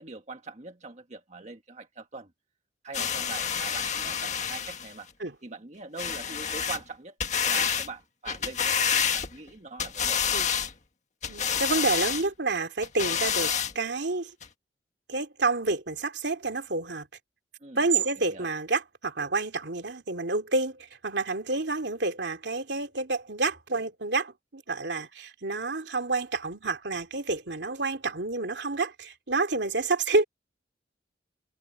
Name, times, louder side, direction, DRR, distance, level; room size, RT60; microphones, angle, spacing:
voice 1, 0.0-2.3 2.8-5.1 5.4-7.2 7.4-10.3 17.6-17.8 18.3-18.5, right 3 dB, 40° right, 1.5 m, -42 dB
sound 1, 2.9-4.9 6.0-6.8 7.2-7.9 8.3-9.5 9.8-10.7 11.2-12.2 12.8-13.7 14.4-14.5, left 7 dB, 40° left, 1.6 m, -28 dB
voice 2, 11.3-14.3 15.1-17.1 17.8-30.2, right 3 dB, 75° right, 2.7 m, -29 dB
head